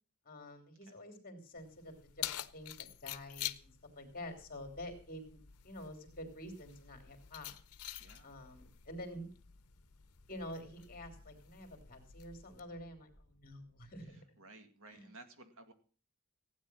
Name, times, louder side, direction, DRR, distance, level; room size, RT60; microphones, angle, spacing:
voice 1, 0.2-3.7 3.9-7.5 8.2-9.3 10.3-14.2 14.9-15.1, left 1 dB, 40° left, 6 dB, 3.2 m, -48 dB
Keys jangling, 1.6-12.6, left 13 dB, 80° left, 0.7 m, -48 dB
sound 1, 4.6-14.1, left 1 dB, 35° right, 7.8 m, -69 dB
voice 2, 8.0-8.3 14.0-15.7, right 2 dB, 65° right, 7 dB, 2.0 m, -57 dB
16.0 x 9.3 x 6.2 m, 0.40 s
head